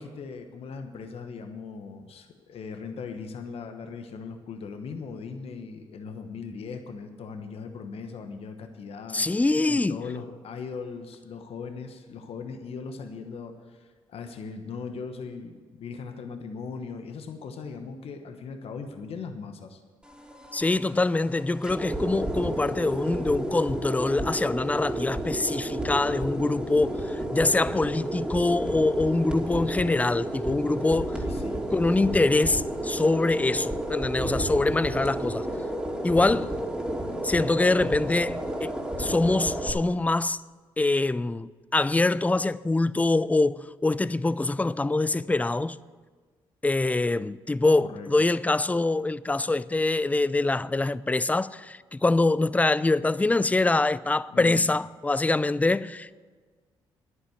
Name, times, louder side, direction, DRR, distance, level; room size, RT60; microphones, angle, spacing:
voice 1, 0.0-19.8 31.2-31.7 47.8-48.1 54.3-54.7, left 5 dB, 60° left, 1.1 m, -39 dB
voice 2, 9.1-10.0 20.5-27.0 27.3-31.1 31.7-35.5 36.0-36.5 37.2-40.4 40.8-45.8 46.6-56.3, left 2 dB, 15° left, 0.4 m, -24 dB
sound 1, 20.0-39.7, right 1 dB, 10° right, 2.7 m, -31 dB
10.5 x 9.6 x 7.9 m
hypercardioid pair, 50°, 11 cm